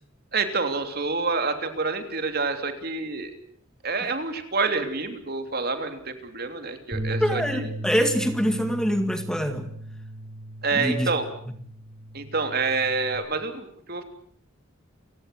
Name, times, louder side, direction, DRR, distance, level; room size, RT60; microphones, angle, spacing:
voice 1, 0.3-3.3 3.8-7.7 10.6-11.2 12.1-14.0, right 4 dB, 50° right, 7 dB, 3.2 m, -27 dB
Bass guitar, 6.9-13.2, right 1 dB, 20° right, 6.1 m, -36 dB
voice 2, 7.2-9.7 10.7-11.1, equal, 5° left, 7 dB, 2.0 m, -24 dB
29.5 x 17.0 x 8.0 m, 0.63 s
head